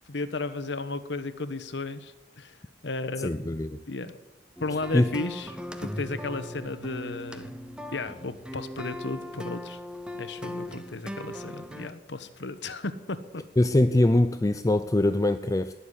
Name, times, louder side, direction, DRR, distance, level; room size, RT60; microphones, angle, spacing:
voice 1, 0.1-2.6 2.8-3.4 3.9-4.2 4.6-7.6 7.9-9.8 10.2-13.4, left 3 dB, 70° left, 11 dB, 1.2 m, -34 dB
voice 2, 3.2-3.8 4.9-5.2 13.6-15.7, left 1 dB, 20° left, 11 dB, 0.4 m, -23 dB
sound 1, 4.6-11.9, left 1 dB, 5° right, 0.9 m, -39 dB
19.0 x 7.1 x 10.0 m, 1.1 s
head